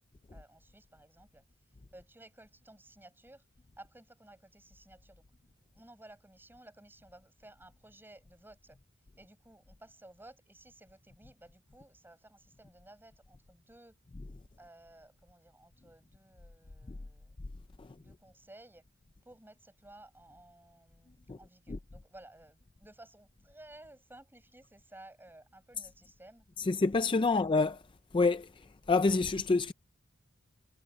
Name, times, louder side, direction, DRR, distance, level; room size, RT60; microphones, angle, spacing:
voice 1, 0.3-1.4 1.9-3.4 3.8-5.3 5.7-8.8 9.2-14.0 14.6-17.3 17.8-18.8 19.2-26.5 27.3-27.4, right 1 dB, 10° right, 8.0 m, -56 dB
voice 2, 26.6-27.8 28.1-29.7, left 3 dB, 25° left, 0.4 m, -28 dB
head